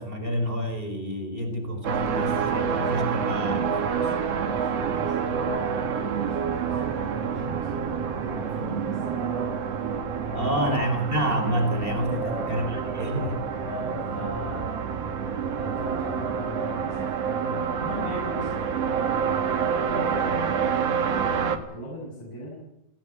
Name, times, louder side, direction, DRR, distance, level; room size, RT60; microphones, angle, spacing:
voice 1, 0.0-4.1 4.8-4.9 10.3-13.4, equal, 15° right, 5 dB, 4.2 m, -29 dB
sound 1, 1.8-21.6, right 7 dB, 50° right, 2.2 m, -28 dB
voice 2, 4.4-9.5 10.3-10.9 12.1-12.5 13.6-14.9 15.5-20.8 21.3-22.6, left 1 dB, 65° left, -5 dB, 9.2 m, -38 dB
22.0 x 16.0 x 9.3 m, 0.87 s
omnidirectional pair, 4.7 m